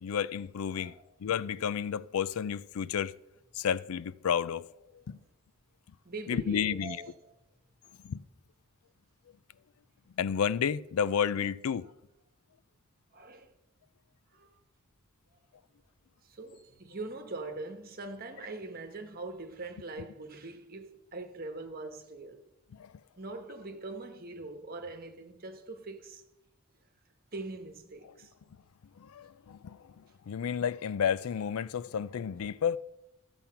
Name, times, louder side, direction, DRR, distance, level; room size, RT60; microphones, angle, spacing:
voice 1, 0.0-0.9 1.2-3.1 3.5-4.6 5.1-5.2 6.3-7.0 8.0-8.2 10.2-11.9 22.7-22.9 29.0-32.8, left 7 dB, 85° left, 0.4 m, -31 dB
voice 2, 6.0-7.4 7.8-8.0 13.1-13.5 14.3-14.5 16.2-22.5 23.2-26.2 27.3-28.3, right 2 dB, 45° right, 1.3 m, -42 dB
14.0 x 7.1 x 5.8 m
head